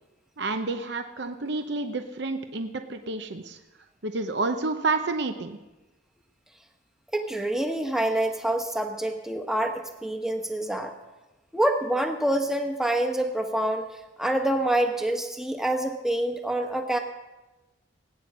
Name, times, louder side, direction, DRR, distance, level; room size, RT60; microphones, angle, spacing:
voice 1, 0.4-3.6 4.0-5.6, right 3 dB, 55° right, 7 dB, 0.8 m, -29 dB
voice 2, 7.1-10.9 11.5-17.0, right 1 dB, ahead, 4 dB, 1.2 m, -26 dB
19.5 x 9.4 x 6.2 m, 1.1 s
head